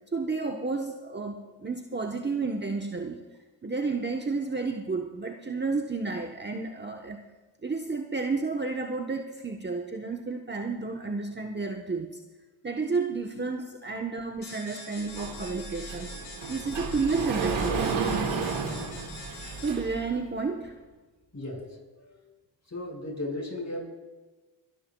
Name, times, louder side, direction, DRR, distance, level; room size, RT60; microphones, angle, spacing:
voice 1, 0.1-3.2 3.6-7.3 7.6-12.2 12.6-16.1 16.5-18.0 19.6-20.7, right 4 dB, 20° right, 3 dB, 1.0 m, -31 dB
sound 1, 14.4-20.0, left 2 dB, 85° left, 5.5 m, -44 dB
Sliding door, 15.2-20.1, right 5 dB, 75° right, 1.9 m, -32 dB
voice 2, 21.3-21.7 21.9-22.2 22.7-23.9, left 1 dB, 35° left, 1 dB, 5.5 m, -35 dB
25.5 x 13.0 x 2.3 m, 1.2 s
supercardioid pair, 45°, 48 cm